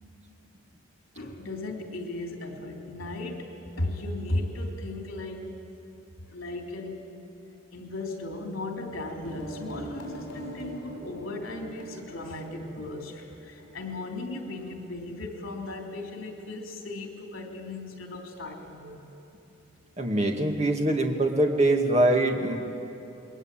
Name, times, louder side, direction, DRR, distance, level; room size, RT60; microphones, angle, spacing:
voice 1, 1.1-5.6 6.3-7.1 7.7-19.1, left 2 dB, 75° left, 1 dB, 3.2 m, -36 dB
sound 1, 9.2-14.6, right 1 dB, 55° left, 5.8 m, -43 dB
voice 2, 20.0-22.6, right 1 dB, 30° right, 2 dB, 2.2 m, -23 dB
28.0 x 21.0 x 9.1 m, 3.0 s
head